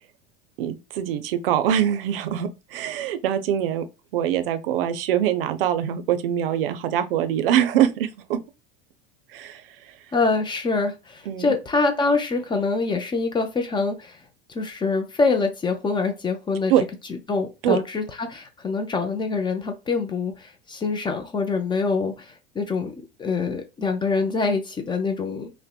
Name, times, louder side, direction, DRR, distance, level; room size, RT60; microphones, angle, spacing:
voice 1, 0.6-3.8 4.1-8.4 9.3-10.0 11.3-11.5 16.7-16.8 17.6-17.8, right 10 dB, 70° right, 0.5 m, -23 dB
voice 2, 10.1-14.2 14.5-16.7 17.3-22.9 23.2-25.5, left 4 dB, 15° left, 0.4 m, -25 dB
2.6 x 2.1 x 2.3 m
hypercardioid pair, 90°, 29 cm